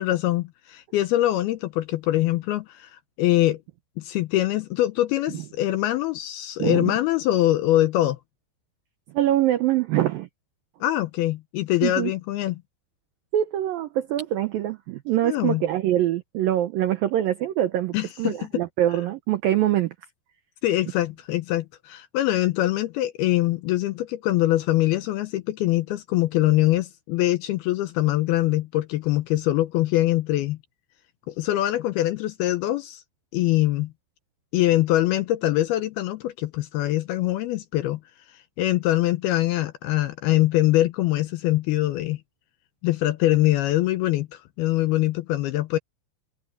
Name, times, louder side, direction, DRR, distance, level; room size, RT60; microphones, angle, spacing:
voice 1, 0.0-3.6 4.0-8.2 10.8-12.6 15.2-15.6 17.9-18.5 20.6-30.6 31.3-33.0 33.3-33.9 34.5-38.0 38.6-42.2 42.8-45.8, left 15 dB, 80° left, 2.3 m, -23 dB
voice 2, 6.6-6.9 9.1-10.3 11.8-12.1 13.3-19.9, right 13 dB, 75° right, 2.1 m, -24 dB
omnidirectional pair, 5.2 m